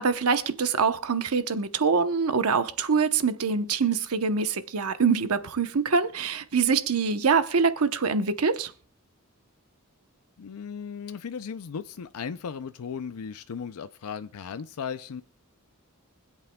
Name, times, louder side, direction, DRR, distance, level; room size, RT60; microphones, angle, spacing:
voice 1, 0.0-8.7, right 5 dB, 85° right, 0.9 m, -24 dB
voice 2, 10.4-15.2, left 6 dB, 85° left, 0.5 m, -36 dB
24.5 x 8.2 x 2.2 m
head